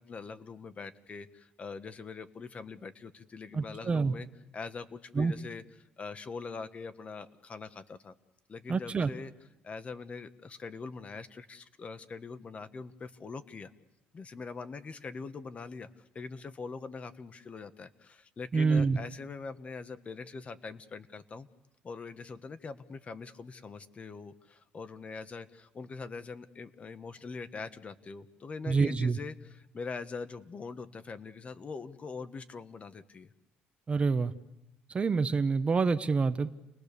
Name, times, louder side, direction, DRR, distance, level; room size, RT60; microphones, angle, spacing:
voice 1, 0.0-4.3 4.5-5.6 6.0-8.1 8.5-9.3 9.6-13.7 14.1-15.9 16.1-21.5 21.8-33.3, left 4 dB, 35° left, 11 dB, 1.4 m, -43 dB
voice 2, 3.5-4.1 5.1-5.3 8.7-9.1 18.5-19.0 28.7-29.2 33.9-34.3 34.9-36.5, right 4 dB, 30° right, 10 dB, 1.0 m, -27 dB
29.5 x 20.5 x 6.9 m, 0.91 s
cardioid pair, 115°, 4 cm